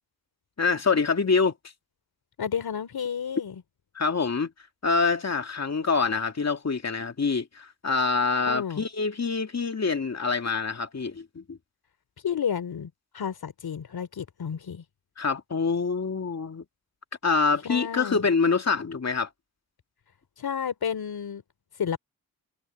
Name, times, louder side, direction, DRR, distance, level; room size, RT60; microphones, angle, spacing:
voice 1, 0.6-1.5 3.9-4.5 4.8-11.6 15.2-16.6 17.2-19.3, left 4 dB, 45° left, 2.5 m, -25 dB
voice 2, 2.4-3.6 8.5-8.8 12.2-14.8 17.6-18.3 20.4-21.4 21.8-22.0, left 7 dB, 75° left, 3.1 m, -31 dB
cardioid pair, 70°, 37 cm